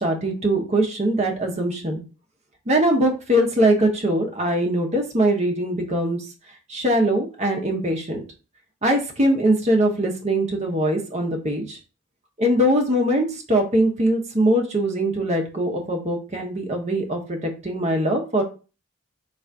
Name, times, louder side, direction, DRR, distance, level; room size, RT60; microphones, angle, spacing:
voice 1, 0.0-2.0 2.7-6.2 6.7-8.2 8.8-11.8 12.4-18.4, right 1 dB, 30° right, 2 dB, 0.8 m, -22 dB
3.8 x 2.5 x 4.5 m, 0.34 s
head